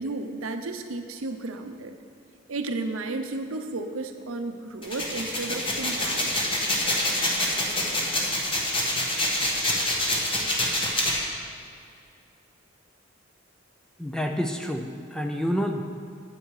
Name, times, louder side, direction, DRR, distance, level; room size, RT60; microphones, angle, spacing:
voice 1, 0.0-1.9 2.5-6.5, right 3 dB, 85° right, 7 dB, 0.7 m, -33 dB
sound 1, 4.8-11.2, left 1 dB, 25° left, 1.2 m, -26 dB
voice 2, 14.0-15.8, equal, 5° left, 3 dB, 0.5 m, -28 dB
9.1 x 8.0 x 4.8 m, 2.4 s
head